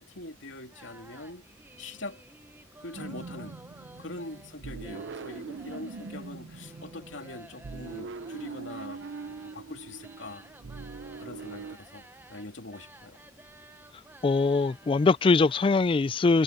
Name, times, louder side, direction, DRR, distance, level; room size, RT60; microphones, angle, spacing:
voice 1, 0.0-1.5 1.8-2.2 2.8-3.6 4.0-10.5 11.2-13.2, left 2 dB, 85° left, 2.5 m, -43 dB
sound 1, 0.7-15.9, right 2 dB, 10° right, 1.0 m, -53 dB
sound 2, 2.9-11.8, right 4 dB, 70° right, 0.6 m, -42 dB
voice 2, 14.2-16.4, left 3 dB, 30° left, 0.3 m, -22 dB
head